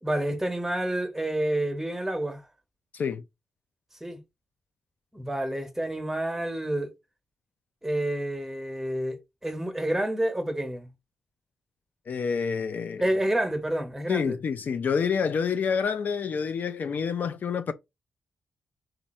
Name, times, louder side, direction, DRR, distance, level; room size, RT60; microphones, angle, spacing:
voice 1, 0.0-2.4 4.0-4.2 5.1-6.9 7.8-10.9 13.0-14.4, right 1 dB, 10° right, 1.2 m, -29 dB
voice 2, 12.1-13.1 14.1-17.7, left 6 dB, 55° left, 0.5 m, -28 dB
4.1 x 2.5 x 4.3 m
cardioid pair, 85°, 4 cm